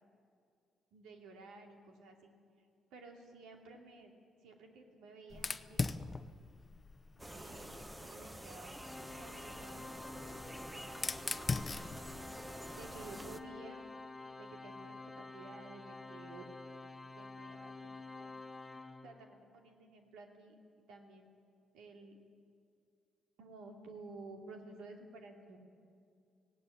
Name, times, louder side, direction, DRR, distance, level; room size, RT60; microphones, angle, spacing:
voice 1, 0.9-4.1 4.4-5.9 7.2-11.5 12.7-13.9 14.4-16.5 17.2-18.3 19.0-20.6 20.9-21.3 21.7-22.2 23.4-25.6, right 3 dB, 90° right, 2 dB, 2.7 m, -54 dB
Fire, 5.3-8.1 9.2-13.4, left 4 dB, 30° left, 0.7 m, -41 dB
sound 1, 7.2-13.4, right 1 dB, 10° right, 0.9 m, -49 dB
Organ, 8.7-19.5, left 3 dB, 10° left, 1.3 m, -49 dB
17.0 x 17.0 x 9.8 m, 2.3 s
cardioid pair, 90°, 0 cm